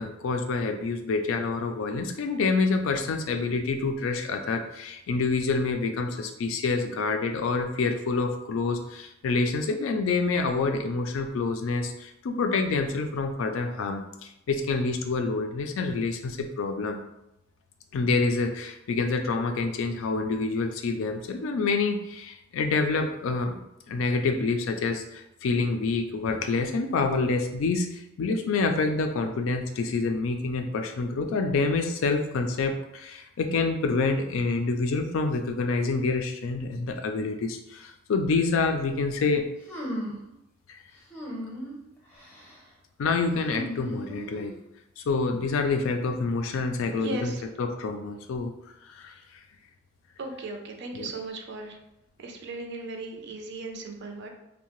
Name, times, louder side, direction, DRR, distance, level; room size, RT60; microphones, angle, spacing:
voice 1, 0.0-17.0 17.9-39.5 40.7-40.8 43.0-44.5 45.0-48.5 48.8-49.2 50.9-51.1, left 3 dB, 70° left, 5 dB, 0.3 m, -27 dB
sound 1, 39.7-40.3 41.1-41.8 42.1-42.6 43.4-44.6, equal, 10° left, 0.7 m, -36 dB
voice 2, 50.2-51.7 52.2-54.3, right 3 dB, 55° right, 3 dB, 0.4 m, -37 dB
2.7 x 2.1 x 2.9 m, 0.85 s
head